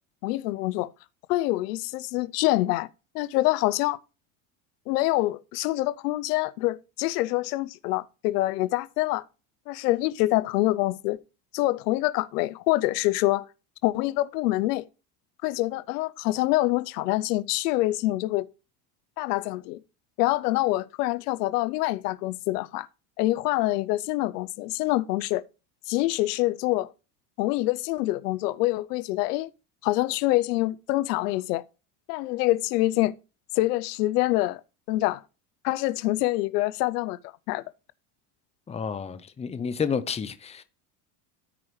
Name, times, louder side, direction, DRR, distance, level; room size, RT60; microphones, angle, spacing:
voice 1, 0.2-0.9 1.3-2.9 3.1-4.0 4.9-9.2 9.7-11.2 11.5-13.5 13.8-14.8 15.4-18.5 19.2-19.8 20.2-22.9 23.2-25.4 25.9-26.9 27.4-29.5 29.8-31.6 32.1-33.1 33.5-34.6 34.9-35.2 35.6-37.2 37.5-37.6, left 18 dB, 85° left, 0.6 m, -25 dB
voice 2, 38.7-40.6, left 6 dB, 15° left, 0.6 m, -30 dB
13.5 x 4.8 x 3.1 m
supercardioid pair, 110°, 46 cm